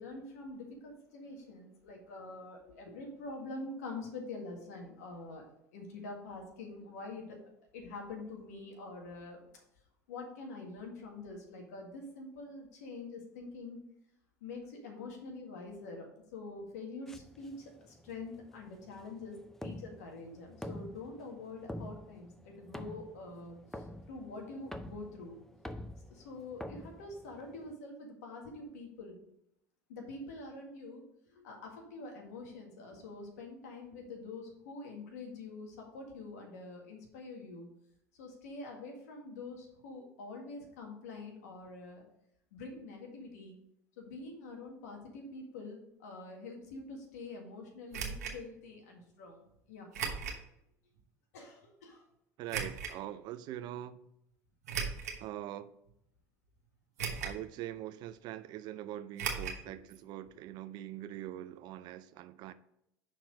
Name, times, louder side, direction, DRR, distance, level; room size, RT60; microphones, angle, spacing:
voice 1, 0.0-5.5 5.7-7.4 7.7-9.4 10.1-13.8 14.4-19.4 19.6-25.4 26.1-29.2 29.9-37.7 38.1-42.0 42.5-43.6 44.0-49.9 51.3-52.0, left 3 dB, 80° left, 1 dB, 1.7 m, -46 dB
sound 1, 17.1-27.7, left 1 dB, 5° left, 0.6 m, -47 dB
sound 2, 47.9-48.4 49.9-50.4 51.0-51.1 52.5-52.9 54.6-55.2 55.9-56.0 57.0-57.5 57.7-57.8 59.2-59.6 59.9-60.0 60.3-60.4, right 6 dB, 90° right, 1.1 m, -37 dB
voice 2, 52.4-54.0 55.2-55.7 57.2-62.5, right 12 dB, 60° right, 14 dB, 0.5 m, -43 dB
5.8 x 4.4 x 5.1 m, 0.78 s
hypercardioid pair, 80°, 8 cm